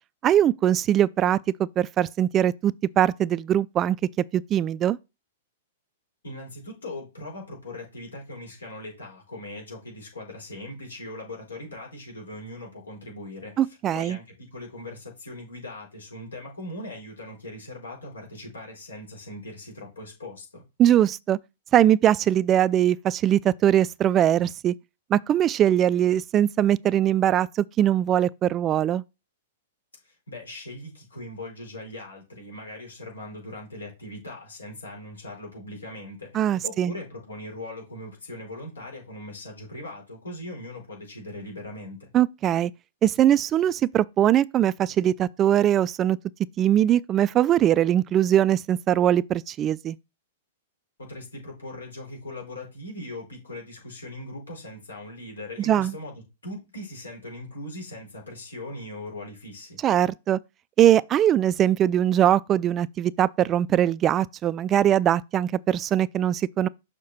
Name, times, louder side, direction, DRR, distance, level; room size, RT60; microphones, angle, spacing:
voice 1, 0.2-5.0 13.6-14.2 20.8-21.4 21.7-24.7 25.1-29.0 36.3-36.9 42.1-42.7 43.0-46.2 46.6-50.0 55.6-55.9 59.8-60.4 60.8-66.7, right 11 dB, 30° right, 0.3 m, -21 dB
voice 2, 6.2-20.6 30.0-42.1 51.0-56.1 56.4-59.8, left 1 dB, 85° left, 4.6 m, -40 dB
6.6 x 5.0 x 4.2 m
hypercardioid pair, 110°, 0 cm